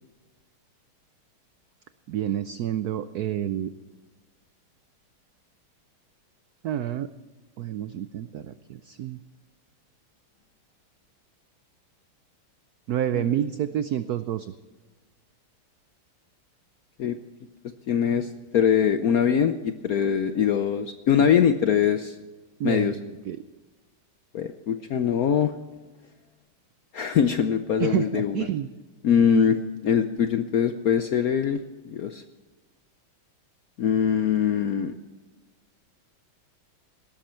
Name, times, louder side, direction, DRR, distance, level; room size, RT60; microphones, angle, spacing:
voice 1, 2.1-3.7 6.6-7.1 7.6-9.2 12.9-14.5 21.2-21.3 22.6-23.4 27.8-28.7, right 11 dB, 90° right, 12 dB, 0.8 m, -29 dB
voice 2, 17.9-22.2 22.6-22.9 24.3-25.5 26.9-28.3 29.0-31.6 31.9-32.2 33.8-34.9, left 8 dB, 70° left, 9 dB, 0.8 m, -22 dB
18.0 x 13.0 x 4.4 m, 1.2 s
omnidirectional pair, 2.3 m